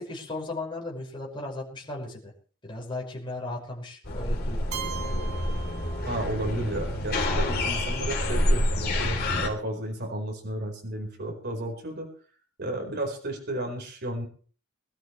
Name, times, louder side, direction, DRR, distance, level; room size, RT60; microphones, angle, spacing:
voice 1, 0.0-2.3 2.6-4.7, left 2 dB, 20° left, -2 dB, 5.6 m, -36 dB
sound 1, 4.0-9.5, left 1 dB, 45° left, 3.5 m, -27 dB
Keyboard (musical), 4.7-6.6, right 9 dB, 90° right, 2.4 m, -39 dB
voice 2, 6.0-12.1 12.6-14.3, right 1 dB, 50° right, 2 dB, 4.5 m, -33 dB
24.5 x 13.0 x 3.3 m, 0.41 s
head